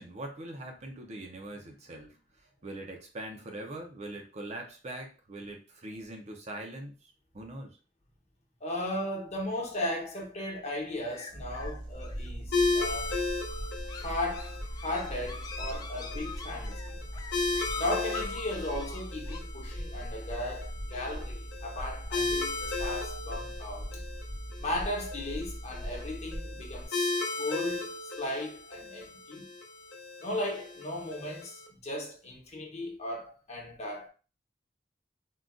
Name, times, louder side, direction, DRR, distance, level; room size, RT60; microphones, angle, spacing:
voice 1, 0.0-7.8, right 1 dB, 40° right, 0.5 m, -42 dB
voice 2, 8.6-13.1 13.9-17.0 17.7-23.9 24.6-27.9 28.2-29.4 30.2-34.1, left 1 dB, 40° left, 0.9 m, -36 dB
sound 1, 11.0-19.4, left 4 dB, 20° left, 0.3 m, -45 dB
sound 2, 11.3-26.8, equal, 70° right, 0.9 m, -40 dB
sound 3, 12.5-31.7, left 3 dB, 65° left, 0.6 m, -36 dB
3.7 x 2.2 x 2.5 m
head